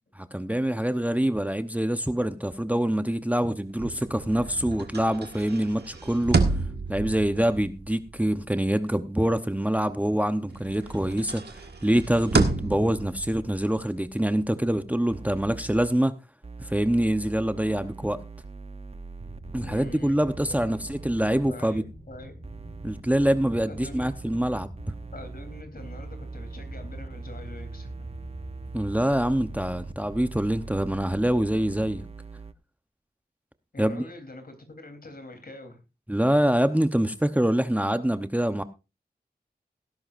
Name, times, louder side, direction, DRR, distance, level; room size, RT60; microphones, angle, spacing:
voice 1, 0.3-6.4 6.9-16.1 16.6-18.2 19.5-21.8 22.8-24.7 28.7-32.0 33.8-34.0 36.1-38.6, right 1 dB, 10° right, 0.8 m, -25 dB
sound 1, 3.7-10.2 10.5-15.9, right 4 dB, 80° right, 1.6 m, -31 dB
sound 2, 14.7-14.8 15.1-15.9 16.4-19.9 20.3-21.5 22.4-32.5, right 3 dB, 35° right, 0.8 m, -41 dB
sound 3, 19.2-32.1, right 1 dB, 55° right, 5.9 m, -45 dB
voice 2, 19.6-20.1 20.5-20.8 21.5-22.3 23.6-24.1 25.1-28.1 33.7-35.8, left 2 dB, 65° left, 3.6 m, -44 dB
18.0 x 11.0 x 2.6 m
wide cardioid pair, 55°, 17 cm